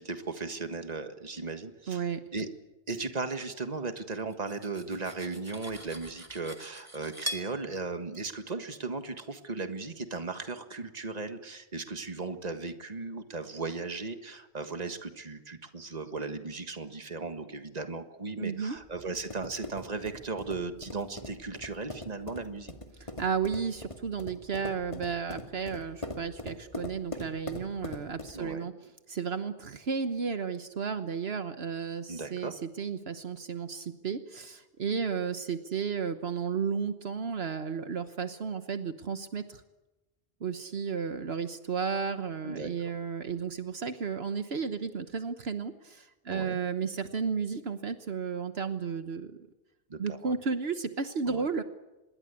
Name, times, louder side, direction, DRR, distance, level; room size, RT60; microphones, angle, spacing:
voice 1, 0.0-2.0 2.3-2.5 2.9-22.7 28.3-28.7 32.1-32.5 42.4-42.9 46.3-46.6 49.9-50.4 51.3-51.5, right 3 dB, 40° right, 8 dB, 1.7 m, -37 dB
voice 2, 1.9-2.2 18.4-18.8 23.0-28.7 29.1-39.6 40.4-49.4 50.0-51.6, right 6 dB, 70° right, 9 dB, 1.4 m, -33 dB
Cutlery silverware, 4.3-7.5, equal, 15° right, 2.6 m, -41 dB
sound 1, 18.8-28.5, left 1 dB, 30° left, 2.2 m, -42 dB
26.0 x 21.5 x 8.3 m, 1.1 s
omnidirectional pair, 1.1 m